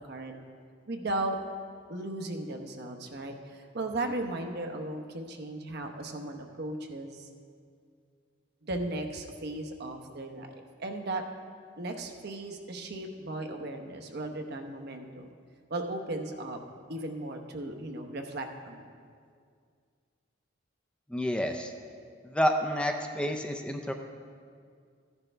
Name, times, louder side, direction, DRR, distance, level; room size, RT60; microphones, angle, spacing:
voice 1, 0.9-1.4 1.9-7.3 8.6-11.2 11.8-15.3 15.7-16.6 16.9-18.9, right 2 dB, 55° right, 4 dB, 0.9 m, -36 dB
voice 2, 21.1-21.7 22.2-23.9, equal, 5° left, 4 dB, 0.5 m, -29 dB
14.0 x 10.5 x 3.4 m, 2.2 s
head